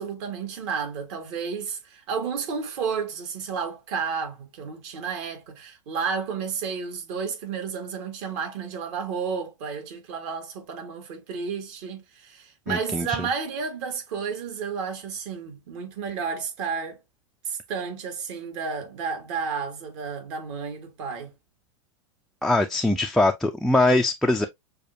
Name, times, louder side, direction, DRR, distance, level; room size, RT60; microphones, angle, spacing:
voice 1, 0.0-17.0 17.4-21.3, right 6 dB, 55° right, 1.8 m, -32 dB
voice 2, 12.7-13.3 22.4-24.5, left 2 dB, ahead, 0.3 m, -22 dB
6.6 x 2.3 x 2.7 m
supercardioid pair, 130°, 16 cm